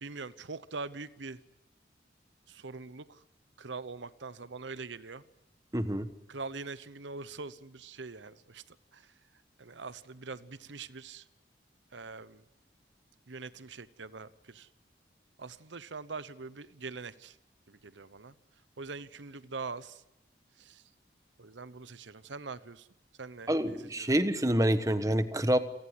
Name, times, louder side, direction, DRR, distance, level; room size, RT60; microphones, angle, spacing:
voice 1, 0.0-1.4 2.5-3.2 3.6-5.2 6.3-9.1 9.6-11.2 11.9-12.4 13.3-14.7 15.4-17.4 17.7-18.3 18.8-20.0 20.6-20.8 21.4-22.9 23.2-24.1, right 4 dB, 85° right, 16 dB, 0.9 m, -43 dB
voice 2, 5.7-6.1 23.5-25.6, right 1 dB, 20° right, 11 dB, 1.3 m, -27 dB
29.0 x 18.5 x 9.6 m, 0.86 s
head